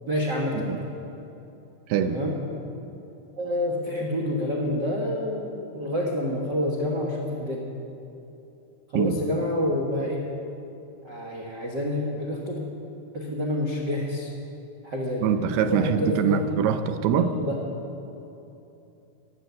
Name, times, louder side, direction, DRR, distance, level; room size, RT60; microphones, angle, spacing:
voice 1, 0.1-0.9 2.0-2.3 3.4-7.6 8.9-10.2 11.0-12.6 13.1-14.3 14.8-15.3 15.7-16.5 17.1-17.6, left 1 dB, 70° right, -2 dB, 1.0 m, -28 dB
voice 2, 15.2-17.3, right 8 dB, 90° right, 9 dB, 2.8 m, -24 dB
14.0 x 10.5 x 8.2 m, 2.9 s
omnidirectional pair, 4.4 m